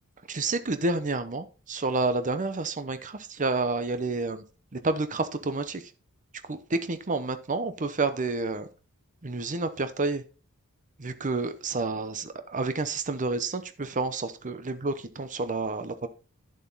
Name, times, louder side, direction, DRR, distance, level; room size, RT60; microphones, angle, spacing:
voice 1, 0.3-4.4 4.8-5.8 6.5-8.7 9.2-10.2 11.0-16.1, right 3 dB, 35° right, 0.8 m, -29 dB
11.0 x 7.1 x 4.0 m
head